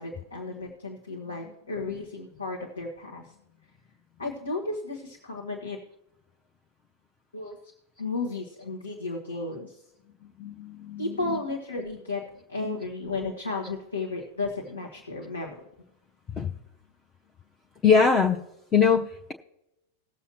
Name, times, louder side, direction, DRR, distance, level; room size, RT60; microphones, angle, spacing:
voice 1, 0.0-3.2 4.2-5.8 7.3-7.6 8.0-9.8 11.0-15.5, left 3 dB, 75° left, -3 dB, 1.9 m, -33 dB
voice 2, 10.4-11.1 12.6-12.8 16.4-16.5 17.8-18.4 18.7-19.3, left 6 dB, 20° left, 4 dB, 0.8 m, -22 dB
20.0 x 7.0 x 3.1 m, 0.86 s
figure-of-eight pair, 90°, 0 cm